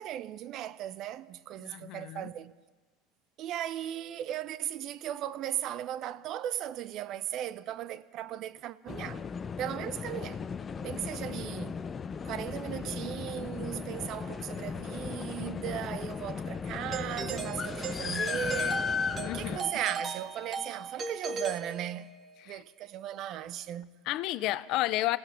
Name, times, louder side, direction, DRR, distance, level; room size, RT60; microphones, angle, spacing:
voice 1, 0.0-2.5 3.4-9.2 9.6-10.4 10.8-11.8 12.3-18.9 19.3-22.1 22.5-23.9, right 11 dB, 55° right, 0.8 m, -37 dB
voice 2, 1.6-2.3 19.2-19.7 22.4-22.6 24.0-25.2, left 17 dB, 60° left, 0.7 m, -32 dB
sound 1, 8.9-19.6, left 6 dB, 30° left, 0.8 m, -36 dB
Doorbell, 16.9-22.3, right 5 dB, 30° right, 2.3 m, -38 dB
27.0 x 17.0 x 5.9 m
hypercardioid pair, 85°, 0 cm